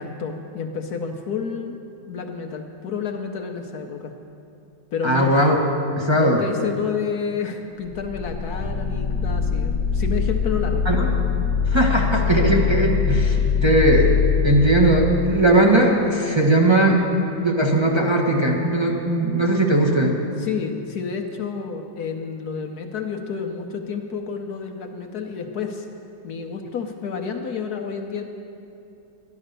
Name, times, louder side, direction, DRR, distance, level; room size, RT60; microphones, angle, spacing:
voice 1, 0.0-1.8 2.0-4.1 4.9-5.3 6.1-10.9 20.4-25.9 26.2-28.2, left 6 dB, 60° left, 4 dB, 1.2 m, -30 dB
voice 2, 5.0-5.6 6.0-6.4 10.8-11.1 11.7-14.1 14.4-17.0 17.4-20.1, right 1 dB, 15° right, -1 dB, 1.1 m, -18 dB
sound 1, 8.0-15.6, left 6 dB, 25° left, 0.8 m, -22 dB
12.5 x 11.0 x 6.6 m, 2.6 s
omnidirectional pair, 2.0 m